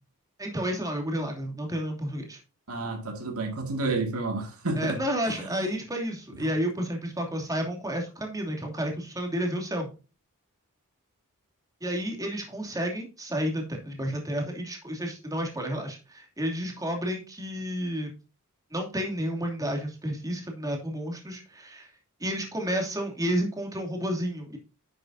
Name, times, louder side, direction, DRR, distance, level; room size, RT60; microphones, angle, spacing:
voice 1, 0.4-2.4 4.8-9.9 11.8-18.1 18.7-21.9 22.2-24.6, equal, 15° right, 2.7 m, -31 dB
voice 2, 2.7-5.4 6.4-6.5, right 3 dB, 75° right, 2.1 m, -31 dB
10.0 x 8.1 x 2.7 m
head